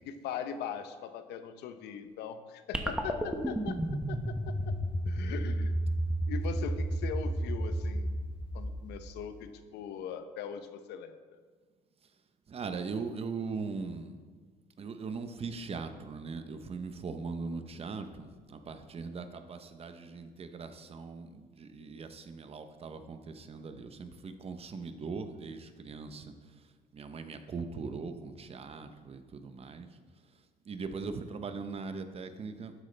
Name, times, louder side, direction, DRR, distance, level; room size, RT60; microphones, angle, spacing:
voice 1, 0.0-3.8 4.1-4.5 5.1-5.8 6.3-8.1 8.5-11.4, left 8 dB, 80° left, 9 dB, 0.8 m, -40 dB
sound 1, 2.7-9.3, right 1 dB, 5° right, 0.9 m, -32 dB
voice 2, 12.5-14.2 14.8-30.0 30.2-32.7, right 4 dB, 35° right, 8 dB, 0.8 m, -40 dB
12.0 x 8.2 x 3.3 m, 1.5 s
cardioid pair, 110°, 17 cm